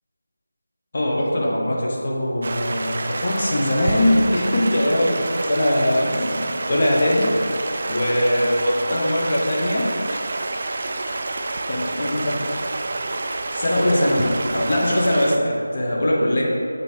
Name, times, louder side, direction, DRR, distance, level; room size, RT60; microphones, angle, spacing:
voice 1, 0.9-7.3 7.8-9.9 11.7-12.4 13.5-16.4, left 1 dB, 40° left, -3 dB, 1.1 m, -21 dB
Stream, 2.4-15.4, right 2 dB, 40° right, 0.4 m, -28 dB
6.7 x 3.5 x 4.5 m, 2.6 s
figure-of-eight pair, 170°, 0 cm